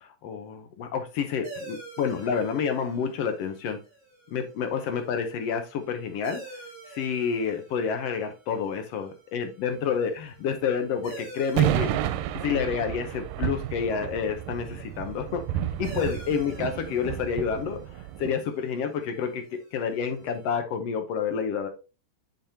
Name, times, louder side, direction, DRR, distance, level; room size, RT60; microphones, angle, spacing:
voice 1, 0.0-3.8 4.3-6.6 6.9-12.0 12.3-15.4 15.8-17.8 18.2-19.4 19.7-21.7, left 6 dB, 80° left, 6 dB, 1.4 m, -29 dB
sound 1, 1.4-20.6, right 2 dB, 50° right, 3.2 m, -49 dB
sound 2, 11.6-18.3, right 11 dB, 90° right, 2.2 m, -30 dB
7.9 x 5.2 x 2.8 m, 0.31 s
omnidirectional pair, 3.8 m